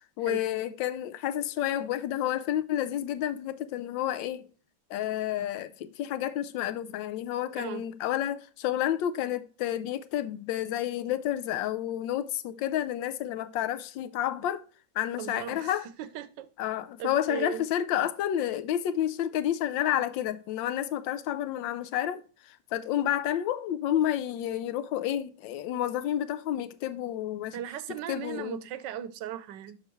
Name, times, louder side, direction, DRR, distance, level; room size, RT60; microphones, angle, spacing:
voice 1, 0.2-4.5 4.9-14.6 14.9-15.9 16.6-27.6 28.1-28.6, left 11 dB, 75° left, 1.3 m, -30 dB
voice 2, 7.5-7.9 15.2-16.5 17.0-17.6 27.5-29.8, right 11 dB, 70° right, 1.3 m, -37 dB
6.8 x 6.6 x 3.1 m
omnidirectional pair, 2.2 m